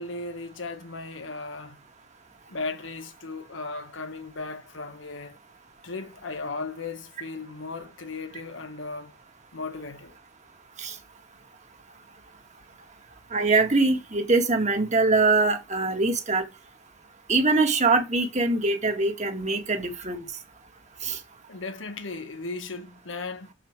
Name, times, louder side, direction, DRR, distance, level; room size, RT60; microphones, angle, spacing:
voice 1, 0.0-1.8 2.5-5.4 5.8-9.1 9.5-10.1 21.5-23.5, left 3 dB, 85° left, 1.1 m, -36 dB
voice 2, 13.3-16.4 17.3-20.2 21.0-21.2, right 3 dB, 40° right, 1.7 m, -23 dB
6.8 x 5.8 x 4.7 m
head